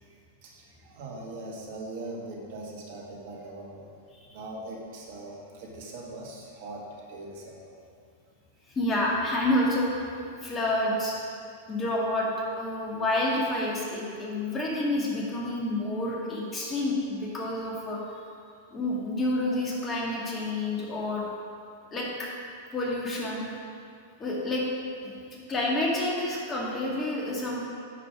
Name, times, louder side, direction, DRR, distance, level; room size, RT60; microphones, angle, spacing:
voice 1, 0.0-3.9 4.3-7.8, right 2 dB, 55° right, -1 dB, 1.8 m, -41 dB
voice 2, 8.7-11.2 11.7-12.3 12.5-18.2 18.7-21.3 21.9-22.3 22.7-23.4 24.2-24.6 25.0-25.1 25.5-27.6, left 1 dB, 25° left, -3 dB, 2.0 m, -29 dB
9.2 x 5.2 x 5.0 m, 2.4 s
hypercardioid pair, 100°, 0 cm